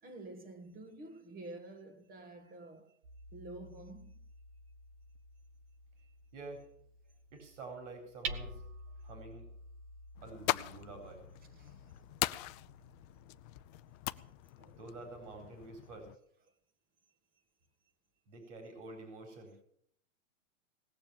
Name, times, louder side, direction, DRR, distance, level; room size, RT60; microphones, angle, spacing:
voice 1, 0.0-3.0 3.3-4.2 6.0-6.1 8.4-8.5 11.5-11.8 12.2-12.3 14.1-14.2 14.6-15.1, right 2 dB, 20° right, 1.6 m, -50 dB
Hammer, 3.0-14.8, right 3 dB, 45° right, 1.5 m, -50 dB
voice 2, 6.3-6.6 7.3-8.6 9.0-9.5 10.2-11.2 14.7-16.1 18.3-19.5, right 3 dB, 65° right, 4.2 m, -48 dB
sound 1, 10.1-16.2, left 18 dB, 35° left, 0.5 m, -41 dB
18.5 x 7.0 x 8.7 m
hypercardioid pair, 125°, 39 cm